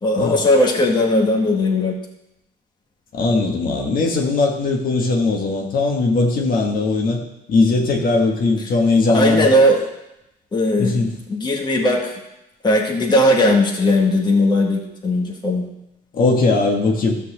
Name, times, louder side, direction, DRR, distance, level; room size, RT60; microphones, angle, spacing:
voice 1, 0.0-1.9 9.1-9.8 10.5-12.1 12.6-15.7, left 1 dB, 25° left, 0 dB, 1.9 m, -18 dB
voice 2, 3.1-7.2 7.5-9.5 10.8-11.1 16.1-17.2, left 3 dB, 55° left, 0 dB, 1.8 m, -19 dB
13.0 x 4.6 x 7.5 m, 0.90 s
cardioid pair, 110°, 17 cm